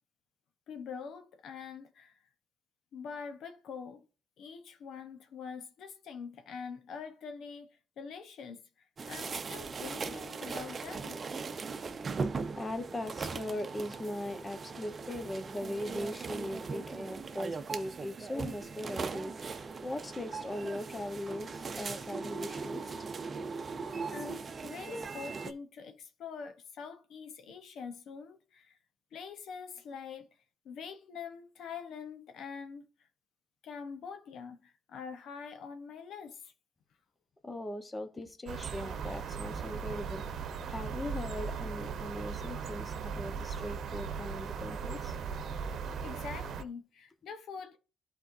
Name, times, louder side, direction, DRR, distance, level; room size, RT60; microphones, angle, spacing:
voice 1, 0.7-2.2 2.9-4.0 4.4-7.7 8.0-11.2 24.1-28.8 29.1-30.3 30.6-32.9 33.6-36.5 46.0-47.8, left 6 dB, 75° left, 0.9 m, -44 dB
sound 1, 9.0-25.5, right 4 dB, 40° right, 0.7 m, -39 dB
voice 2, 12.5-23.1 37.4-45.2, left 1 dB, 20° left, 1.0 m, -40 dB
sound 2, 38.5-46.6, right 6 dB, 65° right, 0.9 m, -38 dB
11.5 x 4.4 x 2.7 m
cardioid pair, 90°, 0 cm